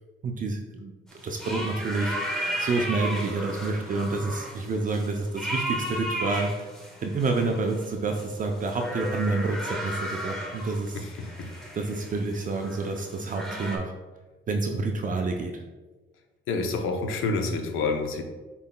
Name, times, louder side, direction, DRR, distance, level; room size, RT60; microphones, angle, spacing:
voice 1, 0.2-0.9 1.2-6.7 7.0-11.0 11.7-13.9 14.5-15.6, right 3 dB, 40° right, 3 dB, 0.5 m, -28 dB
sound 1, 1.1-13.8, right 1 dB, 5° left, 1.0 m, -35 dB
voice 2, 10.9-11.5 16.5-18.2, left 3 dB, 85° left, 5 dB, 0.6 m, -28 dB
5.6 x 4.0 x 2.2 m, 1.2 s
cardioid pair, 90°, 20 cm